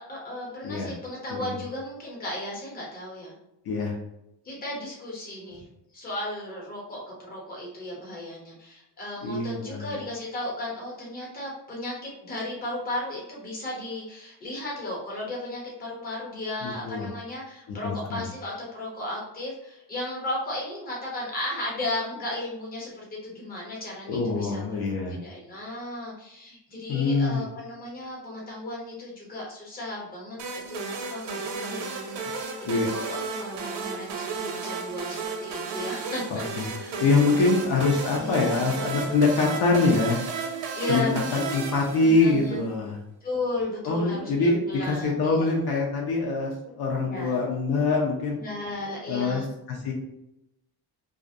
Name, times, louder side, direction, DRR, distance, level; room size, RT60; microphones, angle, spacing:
voice 1, 0.0-3.3 4.4-5.6 5.9-24.6 25.1-37.6 38.1-38.9 40.7-41.3 42.0-42.6 43.2-45.5 47.0-47.4 48.4-49.5, left 1 dB, 20° left, -3 dB, 0.7 m, -35 dB
voice 2, 9.2-10.0 16.6-17.1 17.8-18.3 24.1-25.2 26.9-27.4 32.7-32.9 36.6-36.7 37.0-40.2 40.9-41.1 41.3-43.0 43.8-48.4 49.1-49.9, left 3 dB, 60° left, -1 dB, 0.6 m, -24 dB
sound 1, 30.4-42.6, right 4 dB, 90° right, 0.6 m, -33 dB
2.4 x 2.0 x 2.6 m, 0.85 s
cardioid pair, 160°, 42 cm